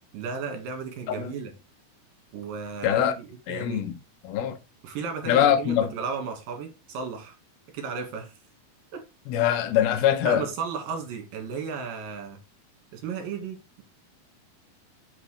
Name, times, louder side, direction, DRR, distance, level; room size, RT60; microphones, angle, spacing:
voice 1, 0.1-1.5 2.3-3.8 4.8-7.3 7.7-8.3 8.9-9.0 10.2-12.4 12.9-13.8, right 5 dB, 65° right, 3.3 m, -34 dB
voice 2, 2.8-3.1 3.5-3.9 4.2-4.6 5.3-5.9 9.3-10.5, left 10 dB, 80° left, 2.6 m, -23 dB
8.1 x 6.1 x 3.2 m
omnidirectional pair, 4.4 m